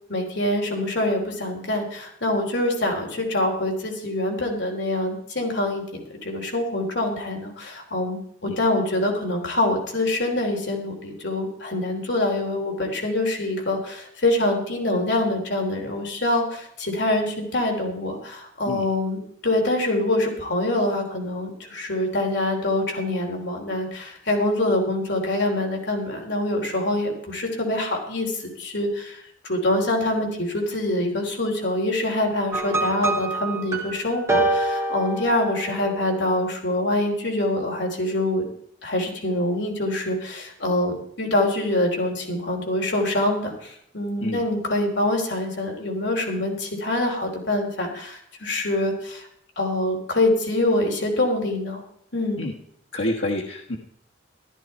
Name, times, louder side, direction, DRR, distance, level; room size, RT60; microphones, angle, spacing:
voice 1, 0.1-38.5 38.8-49.3 49.6-51.8 52.1-52.4, left 1 dB, 65° left, 1 dB, 3.6 m, -25 dB
sound 1, 32.5-35.9, right 2 dB, 15° right, 1.7 m, -26 dB
voice 2, 52.9-53.8, left 1 dB, 90° left, -1 dB, 1.4 m, -28 dB
14.0 x 13.0 x 4.4 m, 0.70 s
head